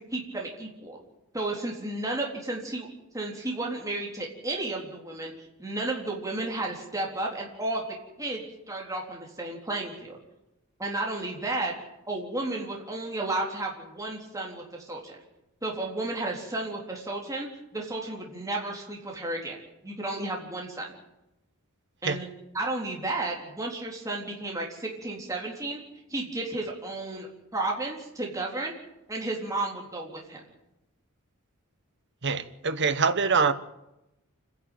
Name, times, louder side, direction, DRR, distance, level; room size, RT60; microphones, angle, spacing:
voice 1, 0.1-1.0 1.3-2.9 3.1-5.3 5.6-7.8 8.2-10.2 10.8-11.7 12.1-15.2 15.6-17.5 17.7-19.6 19.8-20.9 22.0-22.3 22.5-25.8 26.1-27.3 27.5-28.7 29.1-30.4, right 2 dB, 15° right, 3.8 m, -32 dB
voice 2, 32.2-33.5, right 5 dB, 55° right, 1.2 m, -24 dB
28.5 x 11.0 x 9.3 m
head